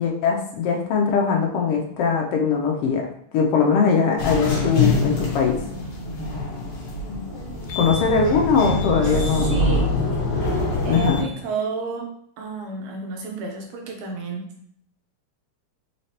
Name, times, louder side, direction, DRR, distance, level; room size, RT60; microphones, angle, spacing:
voice 1, 0.0-3.1 3.3-5.6 7.1-7.2 7.8-9.8 10.9-11.2, left 5 dB, 85° left, 1 dB, 1.3 m, -21 dB
sound 1, 4.2-11.2, left 2 dB, 55° left, 1.3 m, -25 dB
voice 2, 7.3-7.7 9.0-9.9 10.9-12.1 12.4-14.5, right 4 dB, 90° right, 2 dB, 2.1 m, -31 dB
4.8 x 3.2 x 2.8 m, 0.65 s
omnidirectional pair, 3.3 m